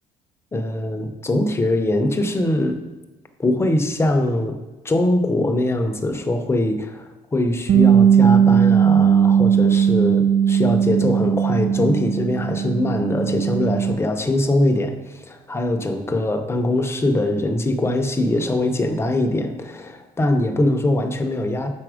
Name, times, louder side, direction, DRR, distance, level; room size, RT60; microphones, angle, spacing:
voice 1, 0.5-2.8 3.4-21.7, left 1 dB, 15° left, 5 dB, 0.7 m, -22 dB
Bass guitar, 7.7-13.9, right 8 dB, 50° right, 0.5 m, -17 dB
6.1 x 4.2 x 4.9 m, 1.1 s
cardioid pair, 110°, 17 cm